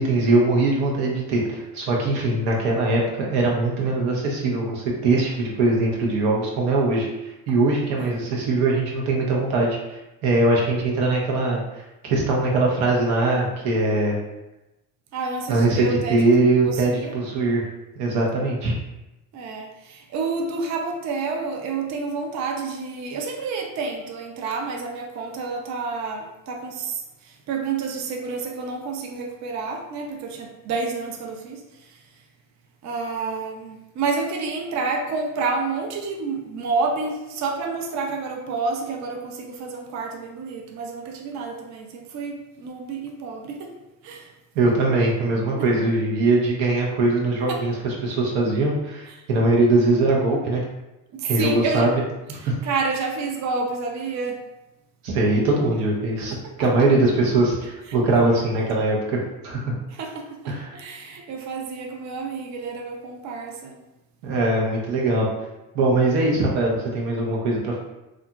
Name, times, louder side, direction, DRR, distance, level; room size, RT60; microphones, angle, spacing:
voice 1, 0.0-14.2 15.5-17.7 18.0-18.8 44.5-50.6 51.2-51.9 52.3-52.6 55.0-59.2 59.4-59.7 60.5-60.7 64.2-65.3 65.7-67.8, right 2 dB, 80° right, -2 dB, 0.9 m, -21 dB
voice 2, 15.1-16.2 16.6-17.1 19.3-27.0 27.5-31.6 32.8-43.7 44.0-44.3 47.5-47.6 51.2-51.9 52.6-54.4 60.0-63.8, right 4 dB, 40° right, 2 dB, 0.5 m, -29 dB
2.7 x 2.4 x 2.3 m, 0.99 s
supercardioid pair, 70°, 45 cm